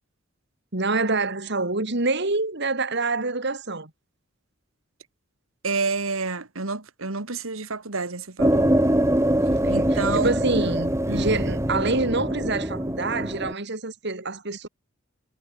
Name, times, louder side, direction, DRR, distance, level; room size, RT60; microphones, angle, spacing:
voice 1, 0.7-3.9 9.6-14.7, right 3 dB, 55° right, 2.7 m, -26 dB
voice 2, 5.6-8.7 9.7-10.3 11.1-11.3, right 4 dB, 80° right, 2.1 m, -29 dB
sound 1, 8.4-13.5, right 1 dB, 15° right, 3.2 m, -23 dB
head